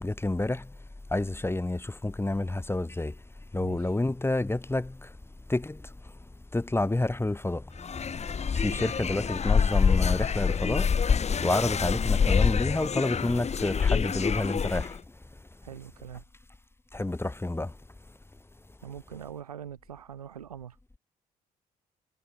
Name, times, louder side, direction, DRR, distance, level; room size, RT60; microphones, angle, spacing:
voice 1, 0.0-0.6 1.1-3.1 3.5-4.9 5.5-5.7 6.5-7.6 8.6-10.9 11.4-14.9 16.9-17.7, left 2 dB, 15° left, 1.7 m, -29 dB
voice 2, 3.5-3.9 8.7-8.9 15.6-16.3 18.8-20.8, right 9 dB, 85° right, 6.4 m, -43 dB
sound 1, 7.8-15.0, left 6 dB, 35° left, 1.6 m, -26 dB
figure-of-eight pair, 45°, 19 cm